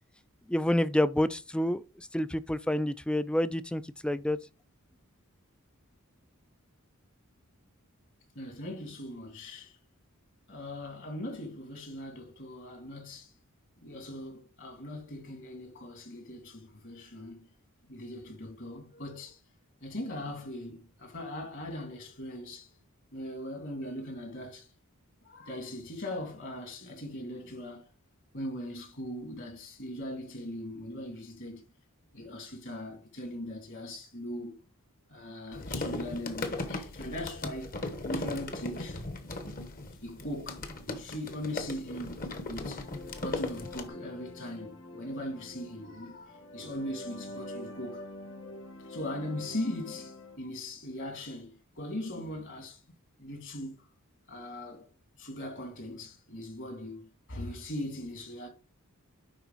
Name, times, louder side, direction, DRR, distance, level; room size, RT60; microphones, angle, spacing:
voice 1, 0.5-4.4, left 1 dB, 5° left, 0.3 m, -28 dB
voice 2, 8.3-9.8 10.5-13.3 13.8-17.5 17.8-19.4 19.8-22.7 23.1-24.7 25.2-27.9 28.3-31.6 32.1-34.6 35.1-37.8 38.0-39.0 40.0-42.9 43.2-48.1 48.8-52.8 53.2-53.8 54.3-54.9 55.1-58.5, left 1 dB, 55° left, 2.6 m, -40 dB
sound 1, 35.5-43.9, left 2 dB, 40° left, 1.1 m, -37 dB
sound 2, 42.5-50.4, left 2 dB, 75° left, 1.6 m, -46 dB
10.5 x 4.1 x 4.0 m
head